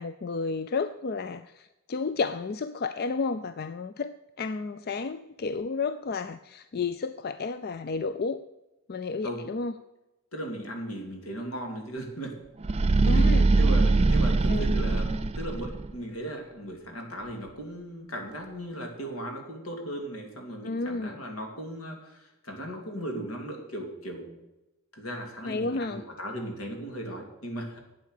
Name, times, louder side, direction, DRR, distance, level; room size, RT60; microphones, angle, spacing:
voice 1, 0.0-8.4 8.9-9.7 13.1-13.5 14.5-14.8 20.6-21.2 25.4-26.0, left 4 dB, 45° left, 12 dB, 0.4 m, -32 dB
voice 2, 10.3-12.3 13.1-13.3 13.5-24.3 24.9-27.8, right 1 dB, 80° left, 3 dB, 2.8 m, -37 dB
sound 1, 12.6-15.9, right 3 dB, 30° right, 0.4 m, -22 dB
11.5 x 8.5 x 6.6 m, 0.98 s
head